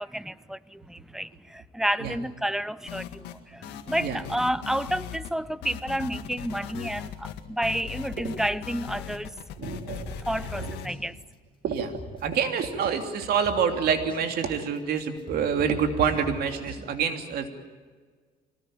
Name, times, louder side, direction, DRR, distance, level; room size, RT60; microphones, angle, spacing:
voice 1, 0.0-9.3 10.2-11.2, right 1 dB, 5° right, 0.7 m, -30 dB
sound 1, 2.9-3.4 3.6-5.3 5.6-10.9, left 9 dB, 85° left, 1.9 m, -38 dB
voice 2, 9.6-10.1 11.6-11.9 12.2-17.5, right 7 dB, 65° right, 3.0 m, -27 dB
sound 2, 10.0-11.0 11.3-11.4 11.8-13.1 13.4-16.8, left 1 dB, 30° left, 7.2 m, -42 dB
24.5 x 19.5 x 9.0 m
cardioid pair, 110°, 17 cm